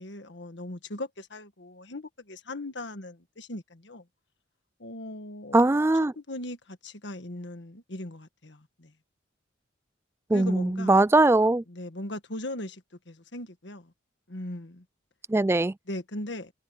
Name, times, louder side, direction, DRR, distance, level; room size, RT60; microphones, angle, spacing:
voice 1, 0.0-4.0 4.8-5.6 6.1-8.9 10.3-11.0 11.7-13.9 14.3-14.8 15.9-16.5, left 1 dB, 65° left, 1.6 m, -39 dB
voice 2, 5.5-6.1 10.3-11.6 15.3-15.7, right 2 dB, 15° right, 0.3 m, -21 dB
head